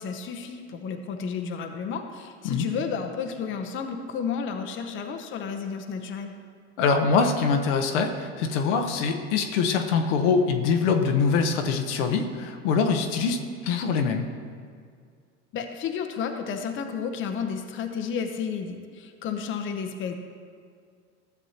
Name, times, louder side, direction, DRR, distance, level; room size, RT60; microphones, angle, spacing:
voice 1, 0.0-6.3 15.5-20.1, left 6 dB, 35° left, 5 dB, 0.8 m, -32 dB
voice 2, 6.8-14.3, left 5 dB, 75° left, 4 dB, 0.9 m, -24 dB
13.0 x 7.3 x 2.9 m, 2.1 s
supercardioid pair, 105°, 35 cm